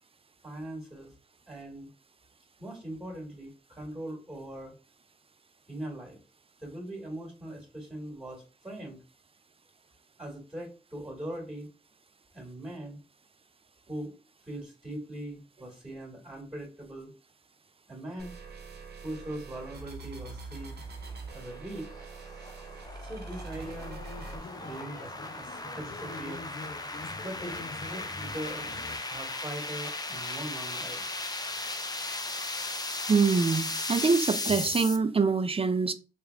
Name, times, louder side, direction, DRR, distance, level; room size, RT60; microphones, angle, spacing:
voice 1, 0.4-1.1 1.5-1.9 2.6-4.7 5.7-6.2 6.6-9.0 10.2-11.7 12.3-13.0 13.9-14.1 14.5-17.1 17.9-18.4 19.0-20.8 21.3-21.9 23.0-24.0 24.4-26.5 27.2-28.7 29.1-31.1, right 1 dB, 10° right, 2.0 m, -41 dB
sound 1, 18.2-24.4, right 4 dB, 85° right, 0.8 m, -43 dB
sound 2, 21.0-35.0, left 2 dB, 25° left, 0.6 m, -36 dB
sound 3, 23.6-29.0, left 3 dB, 65° left, 0.7 m, -44 dB
voice 2, 33.1-35.9, right 4 dB, 35° right, 0.5 m, -25 dB
3.4 x 2.4 x 3.4 m
cardioid pair, 40°, 16 cm